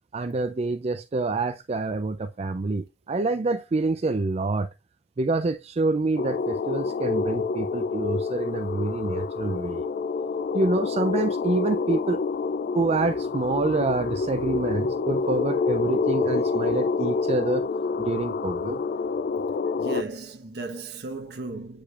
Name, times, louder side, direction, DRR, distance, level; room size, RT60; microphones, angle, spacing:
voice 1, 0.1-4.7 5.2-9.8 10.5-12.2 12.7-17.7 18.0-18.8, right 3 dB, 35° right, 0.4 m, -27 dB
sound 1, 6.2-20.0, left 4 dB, 55° left, 0.3 m, -27 dB
voice 2, 16.3-16.9 19.5-21.8, right 3 dB, 65° right, 1.2 m, -36 dB
8.4 x 4.9 x 2.4 m
head